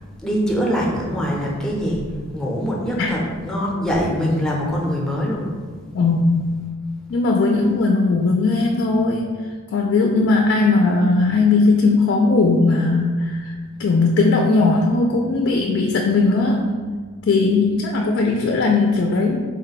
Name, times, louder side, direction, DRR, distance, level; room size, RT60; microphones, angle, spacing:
voice 1, 0.2-2.0 2.3-5.5, equal, 5° left, -3 dB, 0.6 m, -23 dB
voice 2, 5.9-6.4 7.1-9.3 9.7-16.7 17.3-19.4, left 3 dB, 50° left, 1 dB, 0.3 m, -18 dB
3.8 x 2.2 x 4.0 m, 1.5 s
head